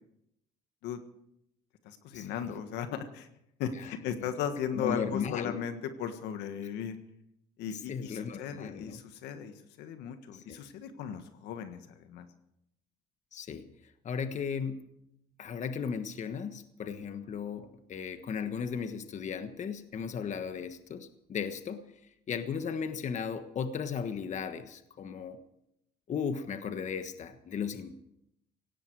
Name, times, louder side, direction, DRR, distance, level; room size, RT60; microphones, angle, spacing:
voice 1, 1.8-3.3 3.6-7.0 7.6-12.3, left 8 dB, 85° left, 8 dB, 1.5 m, -37 dB
voice 2, 4.7-5.5 7.7-9.0 10.3-10.6 13.3-13.7 14.0-14.9 15.4-21.8 22.3-25.4 26.1-27.9, left 6 dB, 45° left, 9 dB, 1.3 m, -36 dB
17.5 x 17.0 x 4.8 m, 0.80 s
cardioid pair, 110°, 17 cm